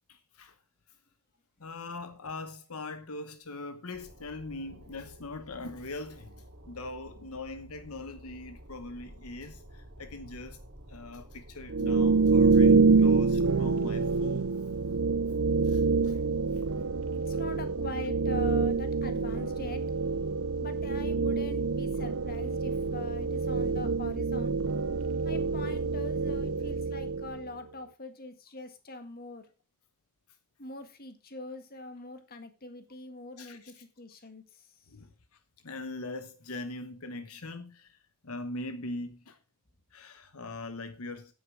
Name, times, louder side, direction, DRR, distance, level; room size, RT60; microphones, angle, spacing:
voice 1, 0.1-0.5 1.6-10.6 10.9-14.5 15.6-16.2 16.5-16.6 33.4-33.8 34.9-35.1 35.6-38.0 38.2-39.4 39.9-41.3, left 2 dB, 70° left, 1.1 m, -41 dB
sound 1, 3.9-23.3, equal, 50° right, 2.3 m, -52 dB
sound 2, 11.7-27.5, right 4 dB, 65° right, 0.6 m, -26 dB
voice 2, 17.1-19.8 20.6-24.5 25.2-29.4 30.6-34.4, left 2 dB, 45° left, 1.7 m, -43 dB
9.6 x 8.9 x 5.0 m
head